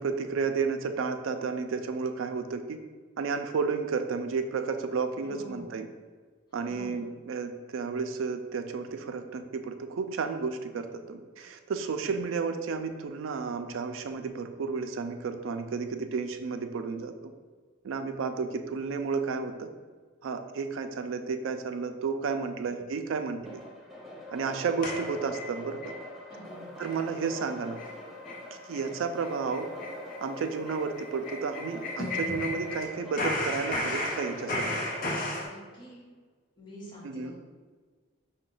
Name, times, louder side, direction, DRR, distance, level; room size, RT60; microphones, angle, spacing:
voice 1, 0.0-2.8 3.2-5.9 6.5-17.3 17.8-19.7 20.2-23.6 24.3-25.8 26.8-27.8 28.7-29.7 30.2-34.8 37.0-37.3, right 5 dB, 80° right, 7 dB, 0.4 m, -32 dB
voice 2, 5.2-5.8 6.6-7.1 22.6-23.0 26.3-26.8 35.4-36.1 36.6-37.3, equal, 25° left, -8 dB, 1.2 m, -47 dB
sound 1, 23.4-35.5, left 1 dB, ahead, 0.5 m, -43 dB
sound 2, 24.8-26.0 26.3-26.4 26.8-27.0 27.3-27.4 27.8-27.9 28.2-28.4 28.7-28.9 29.2-32.8 33.1-35.5, left 1 dB, 45° left, 0.7 m, -34 dB
4.9 x 2.2 x 3.8 m, 1.5 s
head